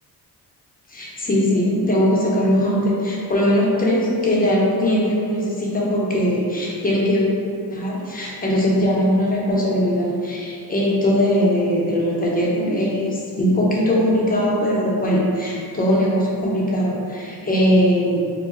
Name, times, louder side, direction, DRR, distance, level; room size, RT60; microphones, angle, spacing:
voice 1, 0.9-7.3 7.7-18.3, equal, 25° left, -5 dB, 0.7 m, -20 dB
3.0 x 2.1 x 3.6 m, 2.4 s
cardioid pair, 105°, 39 cm